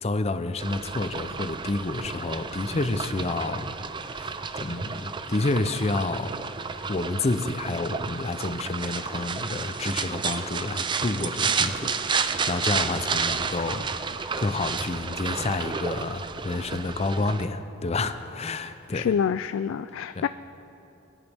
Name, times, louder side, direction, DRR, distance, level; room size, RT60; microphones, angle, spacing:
voice 1, 0.0-3.8 4.1-6.5 6.9-14.1 14.4-19.1 20.1-20.2, left 2 dB, 35° left, 10 dB, 0.6 m, -29 dB
sound 1, 0.6-17.4, right 5 dB, 25° right, 0.4 m, -31 dB
voice 2, 18.9-20.3, left 7 dB, 80° left, 12 dB, 0.3 m, -26 dB
21.0 x 10.0 x 3.5 m, 2.9 s
head